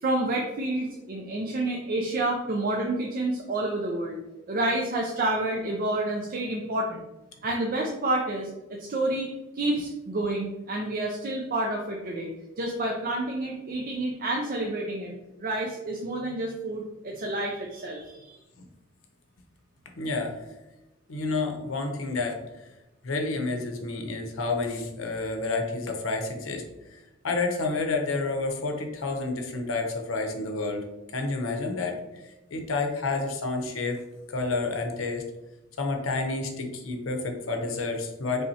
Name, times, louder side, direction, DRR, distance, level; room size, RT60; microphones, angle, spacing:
voice 1, 0.0-4.2 4.5-7.1 7.4-8.5 8.8-15.1 15.4-18.4, right 2 dB, 45° right, 0 dB, 0.5 m, -29 dB
voice 2, 20.0-20.4 21.1-22.4 23.0-26.6 27.2-30.9 31.1-31.9 32.5-34.0 34.3-35.2 35.8-38.4, left 3 dB, 85° left, 4 dB, 0.7 m, -29 dB
4.1 x 3.5 x 2.7 m, 1.0 s
head